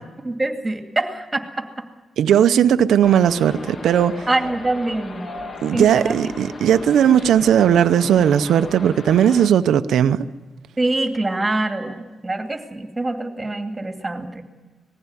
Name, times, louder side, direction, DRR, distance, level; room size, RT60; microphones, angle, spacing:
voice 1, 0.2-1.7 4.3-5.3 5.7-6.1 10.8-14.4, right 2 dB, 20° right, 2.4 m, -24 dB
voice 2, 2.2-4.3 5.6-10.3, right 9 dB, 85° right, 0.6 m, -17 dB
sound 1, 3.0-9.5, left 3 dB, 40° left, 1.8 m, -36 dB
20.0 x 15.5 x 9.8 m
cardioid pair, 100°, 0 cm